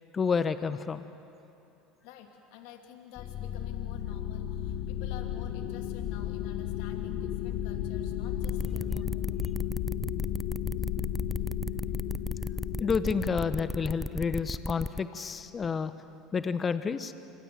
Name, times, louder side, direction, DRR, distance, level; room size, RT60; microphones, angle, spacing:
voice 1, 0.1-1.0 12.8-15.9 16.3-17.1, left 5 dB, 30° left, 12 dB, 1.1 m, -29 dB
voice 2, 2.0-9.2, left 8 dB, 70° left, 4 dB, 2.5 m, -48 dB
sound 1, 3.2-15.4, left 10 dB, 55° left, 1.9 m, -34 dB
sound 2, 8.4-15.0, left 1 dB, 5° left, 0.6 m, -35 dB
26.5 x 24.5 x 7.7 m, 2.8 s
hypercardioid pair, 85°, 0 cm